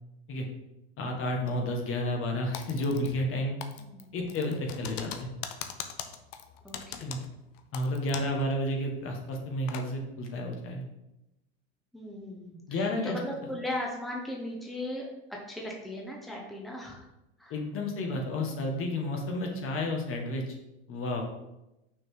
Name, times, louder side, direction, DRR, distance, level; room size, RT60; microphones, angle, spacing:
voice 1, 1.0-3.6 4.1-5.3 7.0-7.2 7.7-10.8 12.7-13.2 17.5-20.6 20.9-21.2, left 1 dB, 40° left, 1 dB, 1.5 m, -31 dB
Typing, 2.5-3.3 3.6-8.4 8.7-8.8 9.3-9.9, left 9 dB, 60° left, 0.8 m, -41 dB
voice 2, 3.8-4.1 6.6-7.3 11.9-17.0 17.4-17.5, left 1 dB, ahead, -1 dB, 1.2 m, -38 dB
6.0 x 4.5 x 4.9 m, 0.92 s
supercardioid pair, 110°, 32 cm